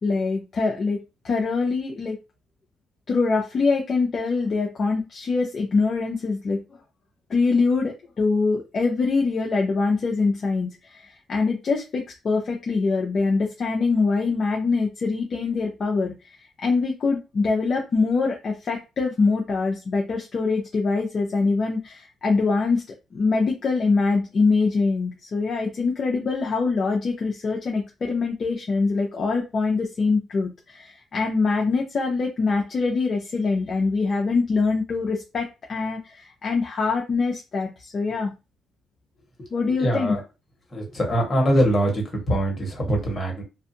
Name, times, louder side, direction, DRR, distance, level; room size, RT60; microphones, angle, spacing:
voice 1, 0.0-2.2 3.1-6.6 7.3-22.8 23.1-38.3 39.5-40.2, left 4 dB, 50° left, 0 dB, 0.6 m, -24 dB
voice 2, 39.8-40.2 40.7-43.4, right 1 dB, 30° left, 0 dB, 1.4 m, -23 dB
2.5 x 2.3 x 2.7 m, 0.27 s
cardioid pair, 90°, 0 cm